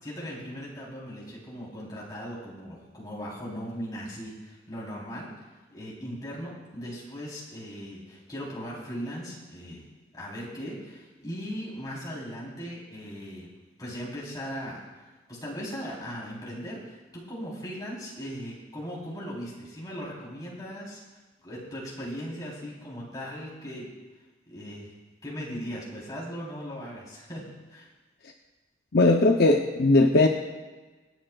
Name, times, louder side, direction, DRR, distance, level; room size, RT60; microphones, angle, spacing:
voice 1, 0.0-5.3 5.7-9.8 10.1-13.5 13.8-21.0 21.4-23.9 24.5-24.9 25.2-27.4 27.7-27.9, equal, 20° left, -5 dB, 3.5 m, -38 dB
voice 2, 28.9-30.3, left 2 dB, 55° left, 2 dB, 0.7 m, -19 dB
26.0 x 8.9 x 2.3 m, 1.3 s
head